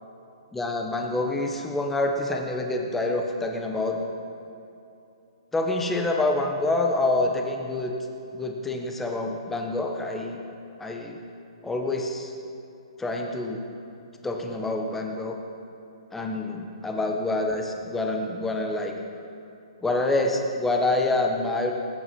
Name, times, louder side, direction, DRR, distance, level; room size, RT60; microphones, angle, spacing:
voice 1, 0.5-4.0 5.5-7.9 8.3-10.4 10.8-11.2 11.6-12.3 13.0-13.6 14.2-15.4 16.1-18.9 19.8-21.7, left 2 dB, 5° left, 2 dB, 1.2 m, -27 dB
20.5 x 9.6 x 5.4 m, 2.7 s
hypercardioid pair, 155°, 3 cm